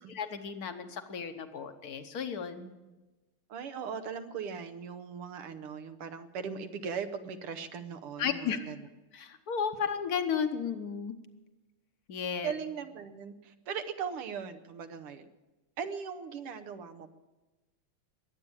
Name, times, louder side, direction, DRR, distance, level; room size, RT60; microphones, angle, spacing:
voice 1, 0.1-2.7 8.2-8.6 9.1-11.1 12.1-12.5, left 7 dB, 50° left, 8 dB, 1.3 m, -34 dB
voice 2, 3.5-8.8 12.4-15.3 15.8-17.1, right 6 dB, 85° right, 9 dB, 1.9 m, -39 dB
22.0 x 8.8 x 7.2 m, 1.1 s
omnidirectional pair, 2.4 m